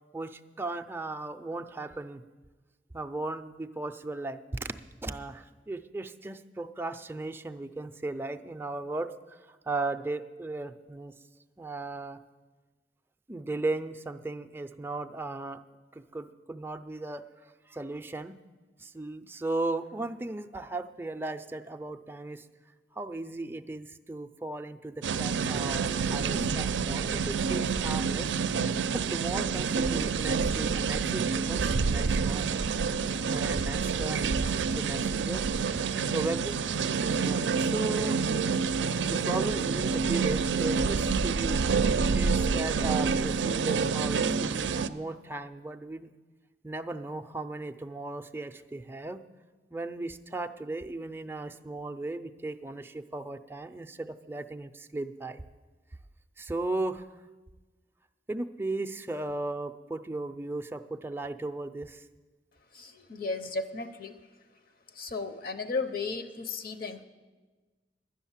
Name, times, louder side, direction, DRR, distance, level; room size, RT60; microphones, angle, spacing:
voice 1, 0.1-2.2 2.9-4.7 5.0-11.1 11.6-12.2 13.3-15.6 15.9-17.2 17.7-18.4 18.8-22.5 22.9-28.3 28.9-32.5 33.2-35.4 36.1-36.6 37.2-38.2 39.1-41.6 42.1-46.1 46.6-49.2 49.7-55.4 56.4-57.1 58.3-62.1, right 2 dB, 15° right, 7 dB, 0.4 m, -36 dB
sound 1, 25.0-44.9, right 5 dB, 90° right, 0.4 m, -28 dB
voice 2, 62.7-64.1 64.9-67.0, left 3 dB, 55° left, 9 dB, 0.7 m, -34 dB
11.0 x 10.0 x 7.3 m, 1.3 s
head